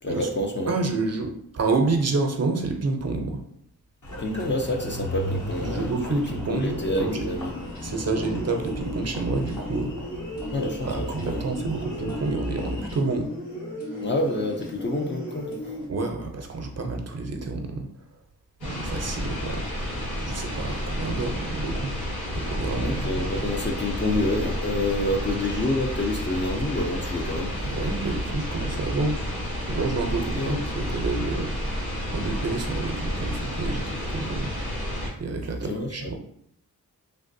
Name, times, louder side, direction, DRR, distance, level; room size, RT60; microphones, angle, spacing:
voice 1, 0.0-0.8 4.2-7.5 10.5-11.5 14.0-15.6 22.8-27.7 30.1-30.6 35.6-36.1, left 1 dB, 30° left, 2 dB, 0.5 m, -28 dB
voice 2, 0.7-3.4 5.6-7.3 7.8-9.9 10.8-13.3 15.9-17.9 18.6-19.6 20.2-21.9 22.3-23.3 27.7-29.2 29.7-31.5 32.1-34.5 35.2-36.1, right 3 dB, 45° right, 4 dB, 0.6 m, -28 dB
Engine, 4.0-13.0, left 1 dB, 55° left, 0.9 m, -36 dB
sound 1, 6.5-15.8, left 1 dB, 70° left, 1.3 m, -36 dB
sound 2, 18.6-35.1, equal, 90° left, 1.1 m, -30 dB
3.4 x 2.1 x 2.6 m, 0.70 s
cardioid pair, 50°, 37 cm